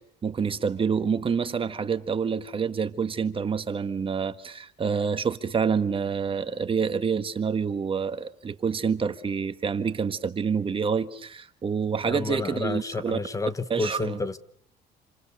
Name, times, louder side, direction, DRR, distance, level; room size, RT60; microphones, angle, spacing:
voice 1, 0.2-13.2 13.7-14.2, right 6 dB, 30° right, 1.5 m, -27 dB
voice 2, 12.0-14.4, left 3 dB, 20° left, 1.0 m, -30 dB
28.0 x 27.0 x 6.9 m
cardioid pair, 110°, 17 cm